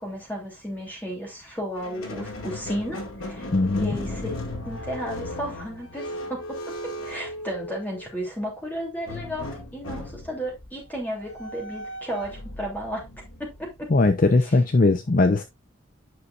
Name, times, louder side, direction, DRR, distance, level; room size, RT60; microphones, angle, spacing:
voice 1, 0.0-3.5 3.7-4.3 4.7-6.6 7.0-13.1 13.4-13.9 14.4-14.5, equal, 10° left, 3.0 m, -33 dB
Squeak, 1.8-8.1 9.1-14.2, left 1 dB, 80° left, 2.1 m, -37 dB
voice 2, 3.5-3.9 13.9-15.4, left 3 dB, 40° left, 0.5 m, -19 dB
9.6 x 5.7 x 2.5 m
head